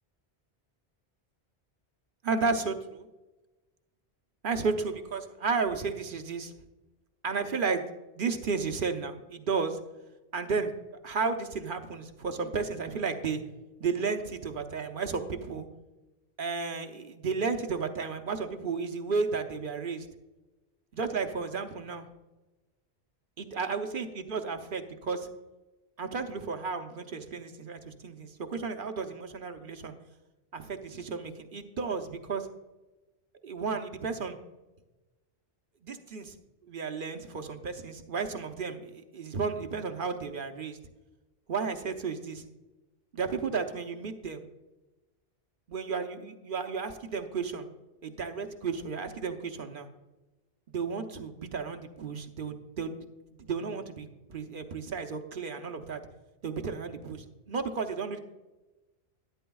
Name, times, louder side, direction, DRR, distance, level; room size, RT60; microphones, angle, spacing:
voice 1, 2.2-3.1 4.4-6.5 7.2-7.9 8.1-9.8 10.3-10.7 11.0-13.4 13.8-15.7 16.4-20.1 20.9-22.1 23.4-25.3 26.0-29.9 30.5-32.5 33.4-34.4 35.8-36.3 36.7-40.8 41.5-42.4 43.1-44.4 45.7-47.7 48.0-49.9 50.7-53.0 53.4-56.0 56.4-58.2, right 5 dB, 55° right, 6 dB, 1.0 m, -33 dB
12.5 x 11.0 x 2.3 m, 1.1 s
omnidirectional pair, 1.1 m